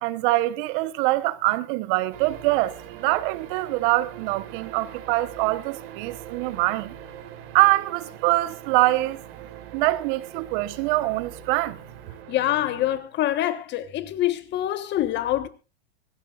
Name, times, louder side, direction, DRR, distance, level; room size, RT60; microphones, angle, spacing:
voice 1, 0.0-6.9 7.5-9.2 9.7-11.8, right 19 dB, 50° right, 1.3 m, -24 dB
sound 1, 2.1-13.0, right 10 dB, 65° right, 3.7 m, -42 dB
voice 2, 12.3-15.5, left 13 dB, 30° left, 1.4 m, -25 dB
25.0 x 12.0 x 2.5 m
hypercardioid pair, 130°, 34 cm